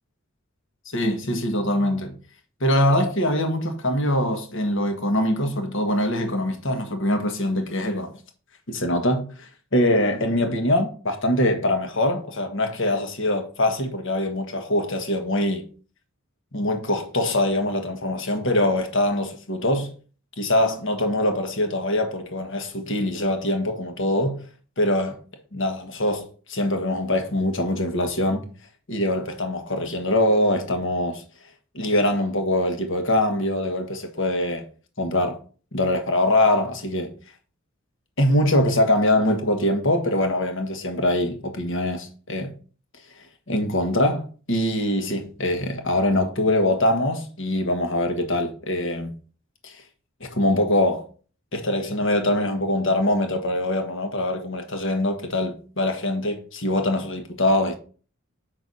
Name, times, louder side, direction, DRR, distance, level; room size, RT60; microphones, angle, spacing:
voice 1, 0.9-2.1 2.6-8.1 8.7-15.6 16.5-19.9 20.4-24.4 24.8-25.2 25.5-28.5 28.9-31.2 31.7-34.6 35.0-35.4 35.7-37.1 38.2-42.5 43.5-49.1 49.6-49.8 50.2-51.1 51.5-57.7, left 1 dB, 60° left, 1.5 m, -23 dB
8.1 x 6.1 x 4.0 m
head